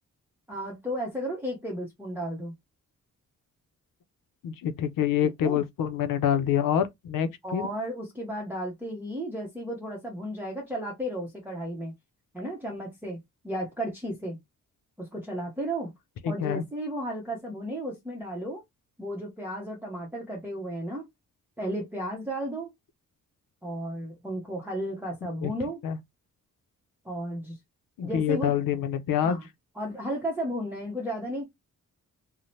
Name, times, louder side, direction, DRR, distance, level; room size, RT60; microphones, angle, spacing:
voice 1, 0.5-2.5 5.2-5.6 7.4-11.9 12.3-14.4 15.0-15.9 16.3-18.6 19.0-21.1 21.6-22.7 23.6-25.8 27.0-27.6 28.0-28.5 29.2-29.5 29.8-31.4, equal, 5° right, 0.7 m, -34 dB
voice 2, 4.4-7.7 16.2-16.6 25.4-25.5 25.8-26.0 28.0-29.4, left 9 dB, 90° left, 0.5 m, -26 dB
2.7 x 2.0 x 3.1 m
wide cardioid pair, 150°, 32 cm